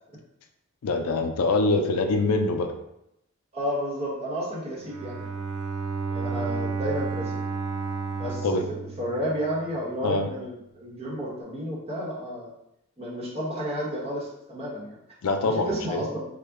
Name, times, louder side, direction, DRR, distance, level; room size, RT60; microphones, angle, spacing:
voice 1, 0.8-2.7 8.4-8.6 10.0-10.3 15.2-16.0, left 3 dB, 75° left, 6 dB, 0.4 m, -24 dB
voice 2, 3.5-5.2 6.1-7.4 8.2-8.6 9.0-12.5 13.0-15.0 15.4-16.2, equal, 25° right, -5 dB, 1.0 m, -31 dB
Bowed string instrument, 4.8-9.8, right 5 dB, 85° right, 0.4 m, -32 dB
3.7 x 2.1 x 3.4 m, 0.81 s
head